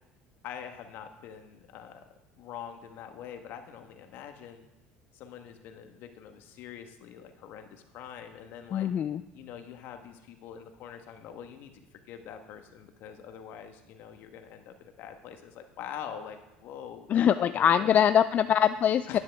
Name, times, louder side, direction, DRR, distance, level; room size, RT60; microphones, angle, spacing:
voice 1, 0.4-2.0 2.4-4.6 5.1-8.9 9.3-11.7 12.1-18.0 19.1-19.2, left 8 dB, 65° left, 6 dB, 1.3 m, -44 dB
voice 2, 8.7-9.2 17.1-19.2, left 9 dB, 45° left, 12 dB, 0.3 m, -23 dB
11.0 x 9.8 x 3.5 m, 1.0 s
supercardioid pair, 95°, 4 cm